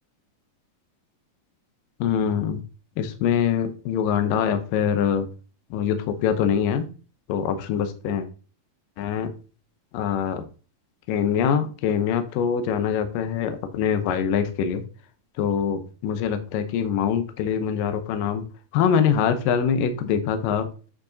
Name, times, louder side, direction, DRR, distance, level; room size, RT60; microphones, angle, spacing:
voice 1, 2.0-2.6 3.0-5.3 5.7-6.9 7.3-8.3 9.0-9.3 9.9-10.5 11.1-14.8 15.4-18.5 18.7-20.7, left 8 dB, 75° left, 8 dB, 2.4 m, -24 dB
8.6 x 5.2 x 2.6 m, 0.36 s
omnidirectional pair, 4.2 m